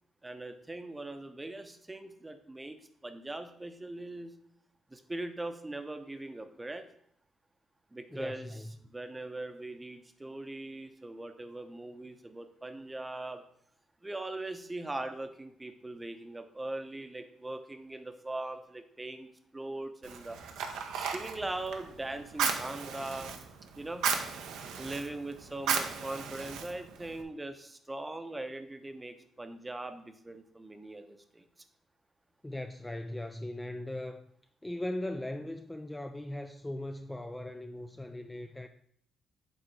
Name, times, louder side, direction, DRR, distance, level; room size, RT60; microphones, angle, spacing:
voice 1, 0.2-2.8 3.0-4.3 4.9-6.8 7.9-8.5 8.9-13.4 14.0-19.3 19.5-20.4 20.9-23.3 23.8-24.1 24.8-31.4, right 2 dB, 15° right, 0.7 m, -40 dB
voice 2, 8.1-8.7 32.4-34.2 34.6-38.7, left 1 dB, 10° left, 0.3 m, -39 dB
Fire, 20.0-27.2, right 6 dB, 85° right, 0.8 m, -36 dB
7.7 x 3.6 x 4.6 m
cardioid pair, 90°, 0 cm